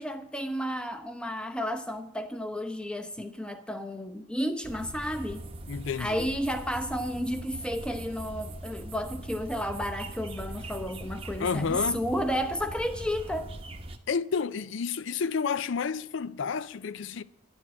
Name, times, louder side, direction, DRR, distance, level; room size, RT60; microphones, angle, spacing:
voice 1, 0.0-5.4 6.0-13.5, equal, 5° left, 0.8 m, -32 dB
sound 1, 4.6-14.0, right 1 dB, 25° right, 0.9 m, -41 dB
voice 2, 5.7-6.3 11.4-12.0 14.1-17.2, left 6 dB, 70° left, 0.4 m, -30 dB
11.0 x 7.3 x 8.6 m
head